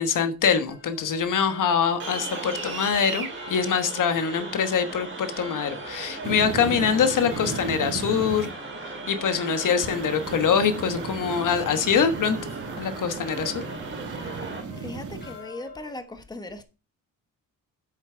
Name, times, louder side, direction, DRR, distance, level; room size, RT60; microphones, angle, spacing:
voice 1, 0.0-8.5 8.8-12.4 12.8-13.6, left 7 dB, 65° left, 1.3 m, -24 dB
sound 1, 0.7-16.0, left 4 dB, 30° left, 5.1 m, -47 dB
sound 2, 2.0-14.6, right 3 dB, 35° right, 3.0 m, -37 dB
sound 3, 6.2-8.5 9.8-15.4, right 5 dB, 60° right, 1.6 m, -35 dB
voice 2, 14.7-16.6, left 2 dB, 10° left, 1.2 m, -38 dB
8.5 x 7.4 x 4.5 m
cardioid pair, 125°, 34 cm